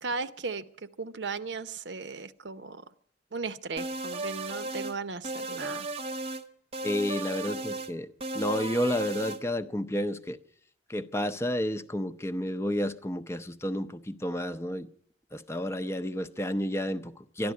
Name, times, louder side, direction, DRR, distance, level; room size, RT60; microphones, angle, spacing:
voice 1, 0.0-2.8 3.3-5.9, right 4 dB, 75° right, 0.8 m, -36 dB
sound 1, 3.8-5.0 5.2-6.4 6.7-7.9 8.2-9.4, right 2 dB, 35° right, 0.9 m, -35 dB
voice 2, 6.8-8.1 8.3-10.4 10.9-14.9 15.3-17.5, left 1 dB, 15° left, 0.6 m, -31 dB
12.5 x 11.5 x 9.4 m
head